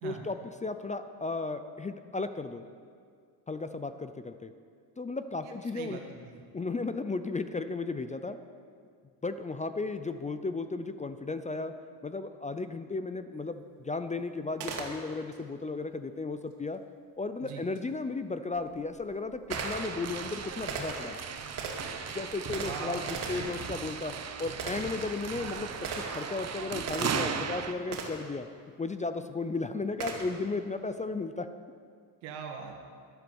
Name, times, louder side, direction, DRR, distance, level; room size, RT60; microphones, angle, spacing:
voice 1, 0.0-2.6 3.5-4.5 5.0-6.0 6.5-8.4 9.2-11.7 12.0-16.8 17.2-21.2 22.1-28.5 28.8-31.5, left 3 dB, 15° left, 10 dB, 0.5 m, -35 dB
voice 2, 5.4-6.4 17.4-17.6 22.6-23.5 32.2-32.8, right 6 dB, 80° right, 3 dB, 2.2 m, -41 dB
Gunshot gunfire, 14.6-15.4 17.7-17.8 18.6-27.4 27.9-28.4 30.0-30.5, right 4 dB, 60° right, 2.5 m, -40 dB
sound 1, 19.5-27.7, right 6 dB, 35° right, 1.0 m, -37 dB
11.5 x 10.5 x 7.1 m, 2.2 s
supercardioid pair, 95°, 47 cm